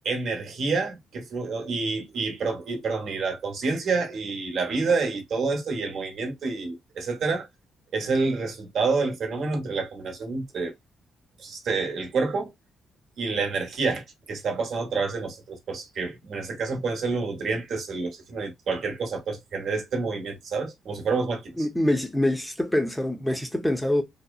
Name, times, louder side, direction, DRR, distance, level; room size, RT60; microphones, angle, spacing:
voice 1, 0.0-7.5 7.9-10.7 11.4-12.5 13.2-21.5, right 4 dB, 65° right, 0.9 m, -28 dB
voice 2, 21.6-24.0, left 1 dB, 5° left, 0.6 m, -25 dB
2.7 x 2.0 x 2.3 m
cardioid pair, 90°, 0 cm